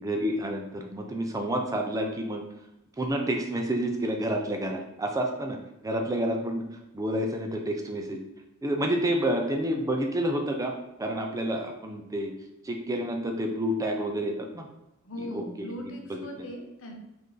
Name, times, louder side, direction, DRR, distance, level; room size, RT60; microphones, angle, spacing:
voice 1, 0.0-2.4 3.0-5.6 5.8-6.6 6.9-8.2 8.6-10.7 11.0-12.3 12.6-14.7 15.2-15.4 15.8-16.5, right 1 dB, 15° right, 3 dB, 0.4 m, -29 dB
voice 2, 15.0-16.9, equal, 65° left, 1 dB, 0.9 m, -39 dB
5.2 x 2.6 x 3.8 m, 0.93 s
head